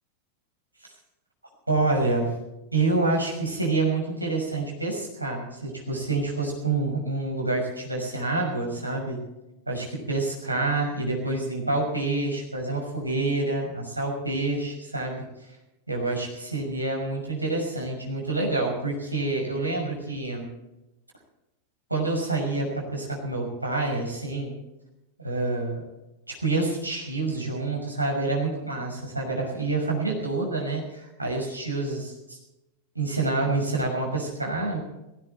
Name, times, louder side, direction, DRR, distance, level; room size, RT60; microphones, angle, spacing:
voice 1, 1.7-2.3 2.7-9.2 9.7-15.2 15.9-20.5 21.9-24.6 25.2-25.8 26.3-32.4 32.9-34.8, right 2 dB, 85° right, 0 dB, 5.9 m, -27 dB
18.5 x 16.5 x 4.4 m, 0.95 s
figure-of-eight pair, 90°, 0 cm